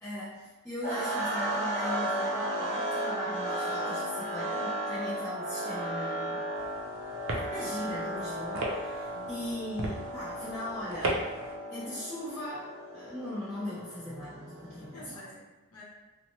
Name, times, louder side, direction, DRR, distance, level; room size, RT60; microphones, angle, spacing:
voice 1, 0.0-6.5 7.4-11.3 11.7-15.2, left 1 dB, 10° left, -15 dB, 0.7 m, -39 dB
sound 1, 0.8-14.9, right 1 dB, 45° right, 1.3 m, -35 dB
sound 2, 6.5-11.6, right 2 dB, 60° right, 0.4 m, -37 dB
voice 2, 9.1-9.5 14.9-15.8, left 1 dB, 75° left, -4 dB, 0.8 m, -50 dB
2.8 x 2.0 x 2.9 m, 1.1 s
head